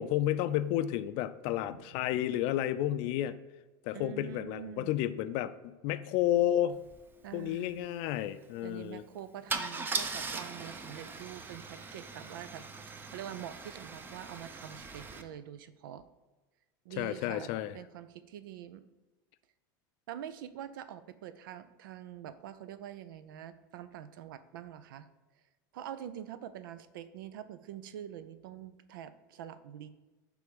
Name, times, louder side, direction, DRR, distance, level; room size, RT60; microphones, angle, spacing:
voice 1, 0.0-3.4 3.8-6.8 7.3-9.0 17.0-17.8, left 12 dB, 60° left, 13 dB, 0.4 m, -31 dB
voice 2, 1.5-1.9 3.9-4.9 7.2-7.9 8.6-16.0 16.8-17.5 17.7-18.8 20.1-25.1 25.7-29.9, right 10 dB, 85° right, 13 dB, 0.5 m, -45 dB
Car / Engine starting / Idling, 6.9-7.0 7.2-7.5 9.5-15.2, right 4 dB, 20° right, 0.5 m, -39 dB
6.1 x 3.4 x 5.2 m, 1.2 s
supercardioid pair, 125°, 11 cm